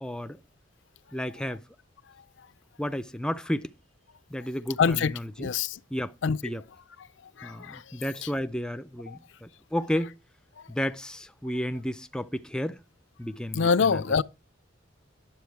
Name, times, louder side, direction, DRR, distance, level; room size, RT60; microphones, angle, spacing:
voice 1, 0.0-0.4 1.1-1.6 2.8-3.7 4.3-5.5 5.9-6.1 6.4-6.6 7.4-10.1 10.7-12.8 13.2-14.2, equal, 5° left, 0.4 m, -32 dB
voice 2, 4.8-5.8 6.2-6.5 7.4-7.8 8.2-8.3 9.1-9.2 13.5-14.2, left 5 dB, 65° left, 0.5 m, -25 dB
10.5 x 7.7 x 4.5 m
head